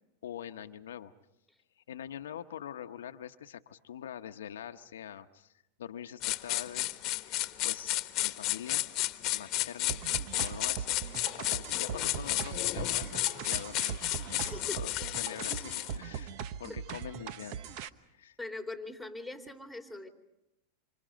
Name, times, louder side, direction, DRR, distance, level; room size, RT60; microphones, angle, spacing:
voice 1, 0.2-1.1 1.9-5.5 5.8-8.9 9.3-10.0 10.3-16.3 16.6-17.6 18.1-18.4, left 9 dB, 85° left, 7 dB, 0.9 m, -44 dB
sound 1, 6.2-16.0, left 17 dB, 45° left, 1.2 m, -33 dB
sound 2, 9.9-17.9, right 8 dB, 55° right, 1.0 m, -40 dB
voice 2, 14.5-14.8 18.4-20.1, left 2 dB, 5° right, 4 dB, 3.0 m, -41 dB
28.0 x 26.0 x 5.2 m, 0.90 s
hypercardioid pair, 110°, 0 cm